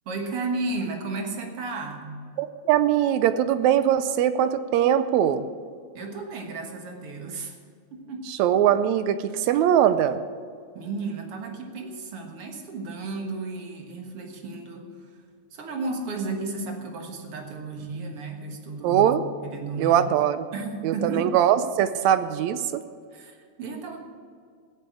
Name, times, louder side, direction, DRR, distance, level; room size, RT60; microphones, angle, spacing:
voice 1, 0.1-2.2 5.9-7.5 7.9-8.3 10.7-15.2 15.5-19.1 19.4-20.1 20.5-21.4 23.1-24.0, right 3 dB, 55° right, 3 dB, 2.2 m, -33 dB
voice 2, 2.4-5.5 8.3-10.2 18.8-19.2 19.8-20.5 20.8-22.8, right 10 dB, 80° right, 12 dB, 1.8 m, -21 dB
15.5 x 8.2 x 8.4 m, 2.1 s
omnidirectional pair, 3.4 m